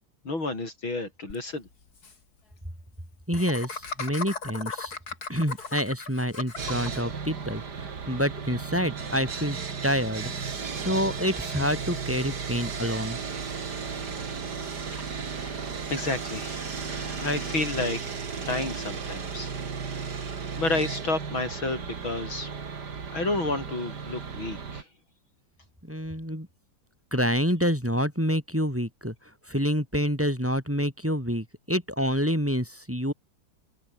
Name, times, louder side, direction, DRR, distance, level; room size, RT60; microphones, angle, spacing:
voice 1, 0.2-1.7 15.1-19.5 19.9-20.1 20.6-22.5 23.1-24.8, left 2 dB, 90° left, 8.0 m, -31 dB
Laughter, 1.3-1.4 1.7-1.8 2.0-2.1 3.3-7.0, left 4 dB, 50° left, 3.5 m, -36 dB
voice 2, 3.3-5.0 5.3-10.3 10.8-13.2 25.8-26.5 27.1-29.1 29.5-33.1, equal, 5° right, 5.3 m, -27 dB
Sawing, 6.6-24.8, right 5 dB, 55° right, 2.8 m, -35 dB
omnidirectional pair, 2.1 m